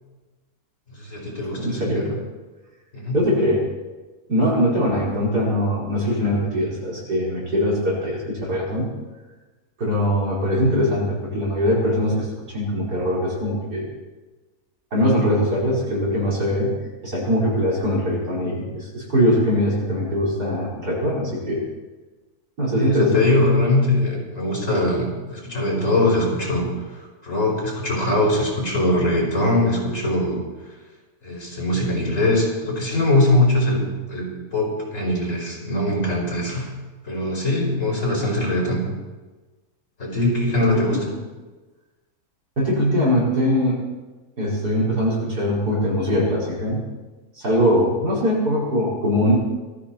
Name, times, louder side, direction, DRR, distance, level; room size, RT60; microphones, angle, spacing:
voice 1, 1.0-2.1 2.9-3.2 22.7-26.7 27.2-30.4 31.2-33.8 34.1-36.7 37.0-38.8 40.0-41.0, left 1 dB, 55° left, -2 dB, 5.4 m, -21 dB
voice 2, 1.5-2.2 3.1-3.6 4.3-8.9 9.8-13.9 14.9-16.7 17.0-18.7 18.9-21.6 22.6-23.5 40.7-41.1 42.6-43.8 44.4-46.8 47.4-49.4, equal, 85° right, -5 dB, 5.5 m, -21 dB
18.5 x 14.0 x 4.5 m, 1.2 s
omnidirectional pair, 1.6 m